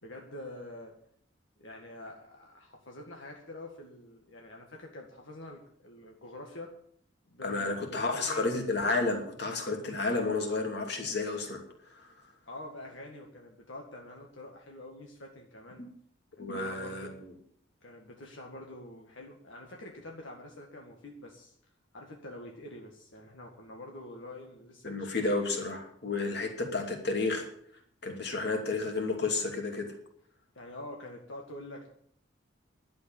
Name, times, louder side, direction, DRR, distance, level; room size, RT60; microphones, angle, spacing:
voice 1, 0.0-0.9 1.6-6.7 7.3-8.6 12.5-15.8 16.4-17.2 17.8-21.5 21.9-25.2 26.2-26.5 30.6-31.9, left 1 dB, 80° left, 1 dB, 1.9 m, -46 dB
voice 2, 7.4-11.6 12.0-12.1 16.4-17.1 24.8-27.4 28.0-29.9, left 3 dB, 55° left, 3 dB, 2.8 m, -31 dB
11.5 x 7.9 x 9.0 m, 0.66 s
head